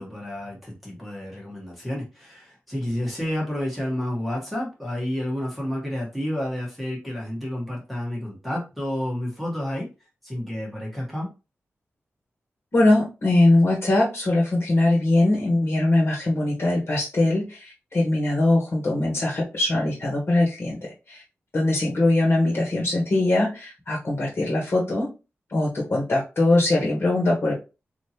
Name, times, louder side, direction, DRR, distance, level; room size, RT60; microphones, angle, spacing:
voice 1, 0.0-9.9 10.2-11.3, left 1 dB, ahead, 1.3 m, -30 dB
voice 2, 12.7-21.2 21.5-25.1 25.5-27.5, left 2 dB, 55° left, 1.4 m, -21 dB
3.6 x 2.7 x 2.8 m
wide cardioid pair, 85°, 5 cm